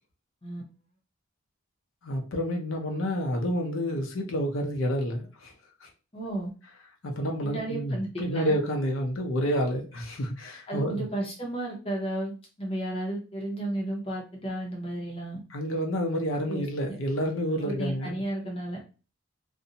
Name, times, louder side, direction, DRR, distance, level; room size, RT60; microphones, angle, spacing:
voice 1, 2.0-5.5 5.8-5.9 7.0-11.0 15.5-18.2, equal, 80° left, 0.6 m, -29 dB
voice 2, 6.1-6.5 7.4-8.6 10.7-12.3 12.6-15.4 16.5-16.6 17.6-18.9, right 1 dB, 30° left, 0.6 m, -33 dB
2.5 x 2.0 x 2.7 m
head